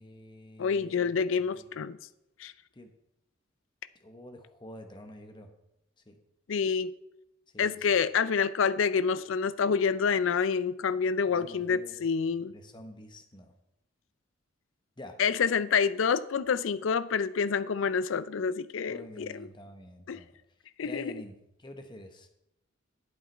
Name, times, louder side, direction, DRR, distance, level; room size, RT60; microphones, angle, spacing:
voice 1, 0.0-1.7 2.7-2.9 4.0-5.5 6.1-6.2 7.5-7.9 11.3-12.0 12.5-13.5 15.0-15.2 18.9-20.4 20.8-22.3, left 1 dB, 25° left, 1.0 m, -48 dB
voice 2, 0.6-2.0 2.4-2.5 6.5-6.9 7.6-12.5 15.2-19.5 20.1-20.2 20.8-21.1, left 6 dB, 80° left, 0.4 m, -27 dB
8.7 x 7.9 x 4.4 m
head